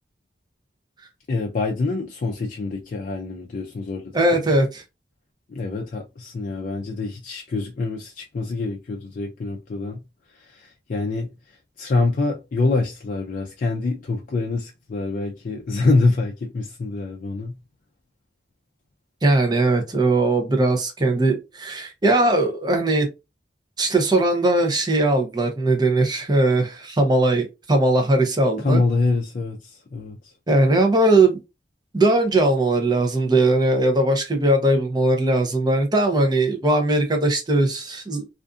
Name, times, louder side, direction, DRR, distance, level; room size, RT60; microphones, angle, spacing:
voice 1, 1.3-4.4 5.5-10.1 10.4-11.3 11.8-17.6 28.6-30.2, left 3 dB, 50° left, 0.3 m, -25 dB
voice 2, 4.1-4.8 19.2-23.1 23.8-28.8 30.5-31.4 31.9-38.3, right 2 dB, 25° right, 0.6 m, -19 dB
2.5 x 2.4 x 2.3 m
head